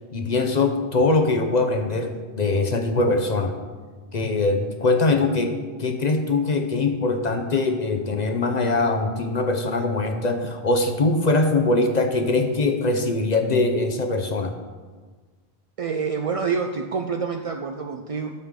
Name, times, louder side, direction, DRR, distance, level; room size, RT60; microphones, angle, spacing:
voice 1, 0.1-3.6 4.1-14.5, left 3 dB, 45° left, 5 dB, 0.7 m, -22 dB
voice 2, 15.8-18.3, right 5 dB, 55° right, 4 dB, 0.4 m, -27 dB
10.0 x 7.2 x 3.7 m, 1.4 s
omnidirectional pair, 1.1 m